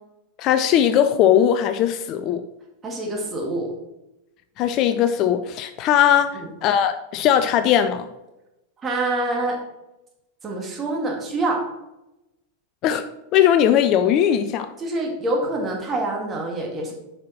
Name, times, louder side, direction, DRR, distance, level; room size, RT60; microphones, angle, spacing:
voice 1, 0.4-2.4 4.6-8.1 12.8-13.0 13.3-14.7, left 9 dB, 40° left, 10 dB, 0.4 m, -19 dB
voice 2, 2.8-3.7 6.3-6.5 8.8-9.6 10.4-11.6 14.8-16.9, right 2 dB, 20° right, 0 dB, 2.0 m, -26 dB
7.4 x 5.6 x 4.2 m, 0.93 s
figure-of-eight pair, 90°, 0 cm